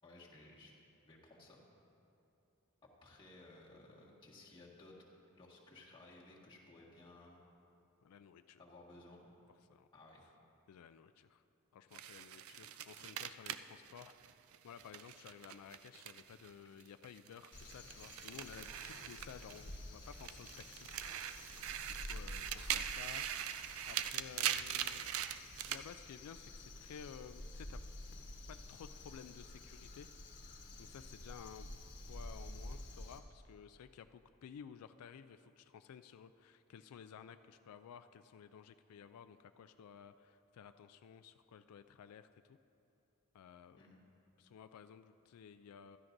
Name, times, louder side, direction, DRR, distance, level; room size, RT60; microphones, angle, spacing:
voice 1, 0.0-0.7 1.0-1.6 3.0-4.9 5.3-7.4 8.6-9.3 9.9-10.2 43.8-44.0, left 2 dB, 20° left, -5 dB, 1.6 m, -58 dB
voice 2, 8.0-8.6 9.7-9.9 10.7-11.4 11.7-14.2 14.6-21.3 21.9-23.3 23.5-25.1 25.7-27.8 28.5-30.1 30.8-31.7 32.1-42.6 43.3-44.0 44.4-46.0, left 7 dB, 85° left, 10 dB, 0.3 m, -55 dB
sound 1, 11.9-16.5 16.8-19.8 20.1-25.8, right 10 dB, 65° right, 0.4 m, -42 dB
Crow, 17.5-33.2, left 1 dB, 55° left, 1.3 m, -51 dB
15.5 x 12.5 x 2.6 m, 2.7 s
head